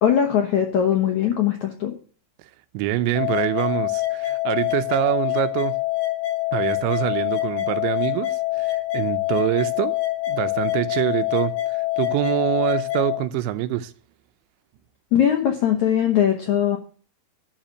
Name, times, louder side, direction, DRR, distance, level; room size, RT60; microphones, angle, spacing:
voice 1, 0.0-1.9 15.1-16.8, left 9 dB, 85° left, 1.6 m, -20 dB
voice 2, 2.7-5.7 6.5-10.0 10.3-13.9, right 14 dB, 90° right, 3.0 m, -25 dB
sound 1, 3.2-13.2, left 17 dB, 45° left, 4.1 m, -25 dB
12.0 x 5.0 x 7.6 m
omnidirectional pair, 5.1 m